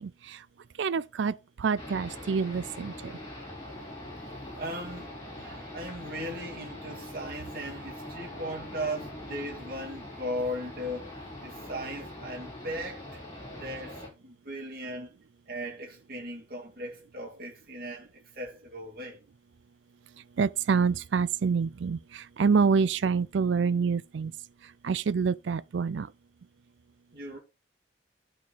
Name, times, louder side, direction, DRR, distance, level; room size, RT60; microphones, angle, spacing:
voice 1, 0.8-1.3 1.6-2.9 20.4-22.0 22.4-24.3 24.8-26.1, right 5 dB, 80° right, 0.4 m, -26 dB
sound 1, 1.8-14.1, left 1 dB, 20° left, 3.7 m, -42 dB
voice 2, 4.5-5.1 5.4-11.1 11.4-13.2 13.5-15.1 15.5-19.2 27.1-27.4, equal, 50° right, 2.2 m, -38 dB
11.0 x 4.4 x 3.9 m
head